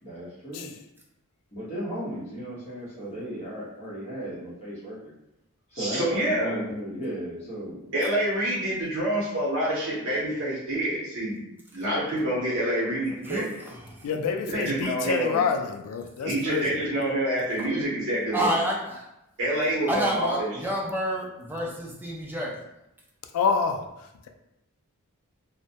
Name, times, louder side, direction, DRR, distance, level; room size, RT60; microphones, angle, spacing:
voice 1, 0.0-0.8 1.5-5.1 5.7-8.0 14.0-14.6, equal, 30° left, -8 dB, 1.0 m, -36 dB
voice 2, 5.7-6.7 7.9-11.4 11.7-13.5 14.5-15.4 16.2-18.5 19.4-20.5, right 1 dB, 60° right, -7 dB, 0.7 m, -27 dB
voice 3, 13.2-14.0 17.6-17.7 18.3-19.0 19.9-22.6, equal, 10° right, -3 dB, 0.4 m, -29 dB
voice 4, 14.0-16.6 23.3-23.9, left 5 dB, 85° left, 5 dB, 0.3 m, -27 dB
2.1 x 2.1 x 2.7 m, 0.87 s
head